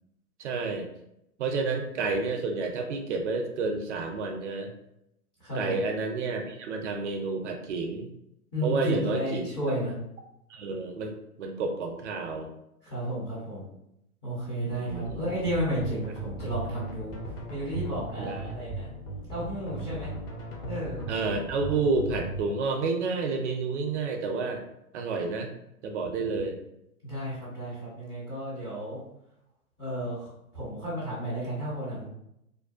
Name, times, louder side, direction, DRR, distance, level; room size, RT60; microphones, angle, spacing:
voice 1, 0.4-0.9 1.4-4.7 5.5-8.1 8.6-9.5 10.5-11.1 11.4-12.5 14.7-15.2 18.2-18.4 21.1-24.6 24.9-25.5 25.8-26.6, right 4 dB, 55° right, 4 dB, 0.5 m, -30 dB
voice 2, 5.4-5.8 8.5-9.9 12.9-13.6 14.2-17.2 17.5-18.9 19.3-20.1 20.7-21.0 27.0-29.0 29.8-32.1, equal, 10° left, -11 dB, 0.4 m, -32 dB
sound 1, 14.9-22.4, right 1 dB, 40° left, 0.7 m, -38 dB
2.5 x 2.2 x 2.3 m, 0.81 s
figure-of-eight pair, 115°, 45 cm